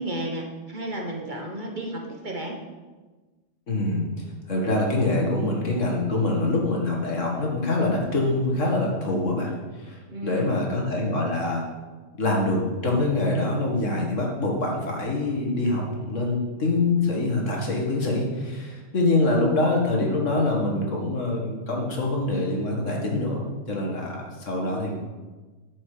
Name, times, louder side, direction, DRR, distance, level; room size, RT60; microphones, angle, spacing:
voice 1, 0.0-2.6 10.1-10.6, right 1 dB, 40° right, 1 dB, 1.4 m, -33 dB
voice 2, 3.7-4.1 4.5-9.5 9.8-11.6 12.2-24.9, left 2 dB, 75° left, -1 dB, 2.3 m, -25 dB
9.9 x 7.9 x 5.0 m, 1.3 s
omnidirectional pair, 1.3 m